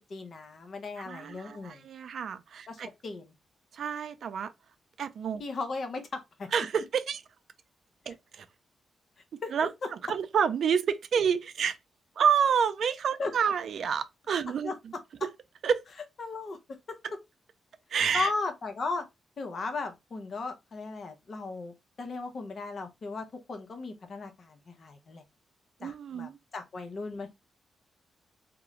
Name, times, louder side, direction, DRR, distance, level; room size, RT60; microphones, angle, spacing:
voice 1, 0.1-1.8 2.7-3.3 5.4-6.5 9.4-9.5 13.2-13.3 14.6-14.7 16.2-16.6 16.9-17.0 18.1-19.1 19.4-25.2 25.8-27.3, left 3 dB, 60° left, 0.7 m, -36 dB
voice 2, 1.1-2.9 3.7-4.5 5.0-5.4 6.5-7.2 8.1-8.5 9.5-9.7 10.1-11.8 12.2-14.7 15.6-15.8 17.9-18.3 25.8-26.4, right 7 dB, 70° right, 0.3 m, -28 dB
2.3 x 2.2 x 3.0 m
supercardioid pair, 45°, 0 cm